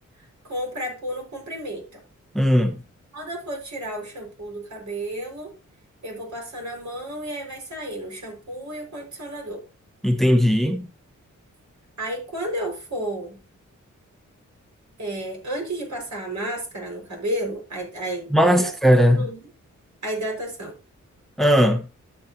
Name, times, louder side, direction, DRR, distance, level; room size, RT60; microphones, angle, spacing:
voice 1, 0.4-2.0 3.1-5.5 6.0-9.6 12.0-13.4 15.0-18.7 19.1-19.5 20.0-20.8, right 1 dB, 65° right, 5.8 m, -32 dB
voice 2, 2.3-2.8 10.0-10.9 18.3-19.3 21.4-21.8, equal, ahead, 1.2 m, -18 dB
12.0 x 7.7 x 2.9 m
cardioid pair, 55°, 31 cm